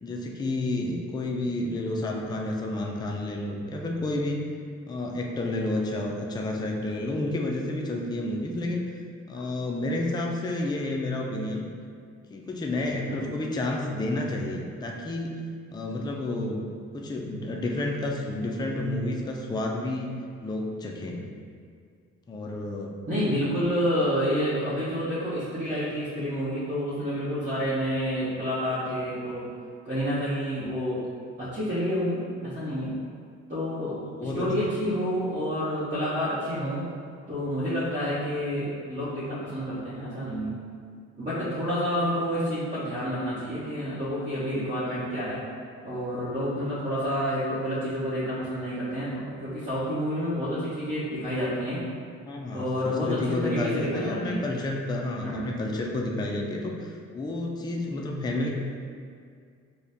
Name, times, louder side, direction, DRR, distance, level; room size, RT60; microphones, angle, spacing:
voice 1, 0.0-4.5 4.9-8.9 9.3-11.7 12.3-15.4 15.7-16.6 16.9-20.2 20.4-21.2 22.3-23.0 34.2-34.9 52.2-58.5, left 2 dB, 15° left, -1 dB, 0.4 m, -30 dB
voice 2, 23.1-29.4 29.8-31.0 31.4-33.0 33.5-36.9 37.3-40.6 41.2-45.4 45.8-51.8 52.5-54.4 55.2-55.5, equal, 25° right, -12 dB, 1.0 m, -29 dB
4.1 x 2.3 x 3.4 m, 2.2 s
cardioid pair, 90°, 30 cm